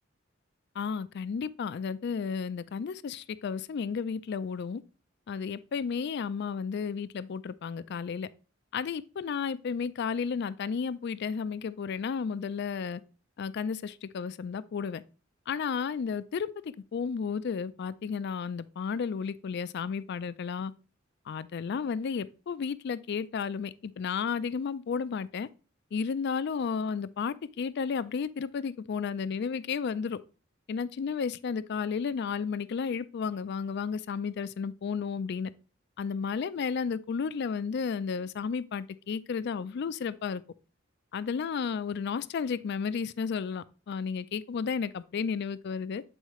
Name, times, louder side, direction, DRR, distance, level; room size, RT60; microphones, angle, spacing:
voice 1, 0.8-4.8 5.3-8.3 8.7-13.0 13.4-15.0 15.5-16.5 16.9-20.7 21.3-25.5 25.9-30.2 30.7-35.5 36.0-40.4 41.1-46.0, left 6 dB, 55° left, 0.4 m, -33 dB
8.1 x 4.6 x 3.0 m
head